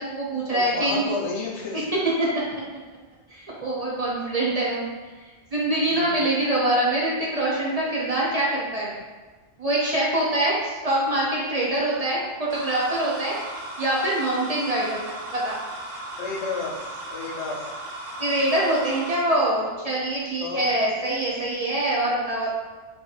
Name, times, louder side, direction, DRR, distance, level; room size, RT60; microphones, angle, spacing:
voice 1, 0.0-1.1 2.2-2.4 3.3-4.9 5.5-8.9 9.6-15.6 18.2-22.5, right 1 dB, 50° right, -5 dB, 0.5 m, -24 dB
voice 2, 0.5-1.9 5.9-6.2 16.2-17.7 20.4-20.6, left 4 dB, 80° left, -2 dB, 1.0 m, -31 dB
sound 1, 12.5-19.2, right 1 dB, 85° right, 1.0 m, -36 dB
2.7 x 2.5 x 3.9 m, 1.3 s
omnidirectional pair, 1.2 m